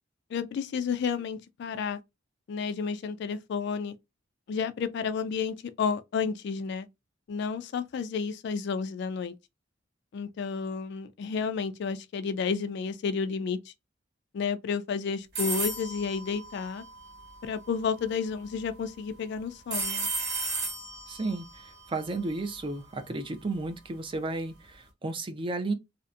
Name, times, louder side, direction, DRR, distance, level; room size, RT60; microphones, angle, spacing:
voice 1, 0.3-2.0 2.5-3.9 4.5-6.9 7.3-9.3 10.1-13.7 14.3-16.8 17.4-20.1, left 5 dB, 60° left, 0.3 m, -31 dB
sound 1, 15.4-17.4 19.7-22.7, right 2 dB, 55° right, 1.2 m, -34 dB
voice 2, 21.1-25.7, right 2 dB, 25° right, 0.4 m, -33 dB
2.6 x 2.1 x 2.3 m
head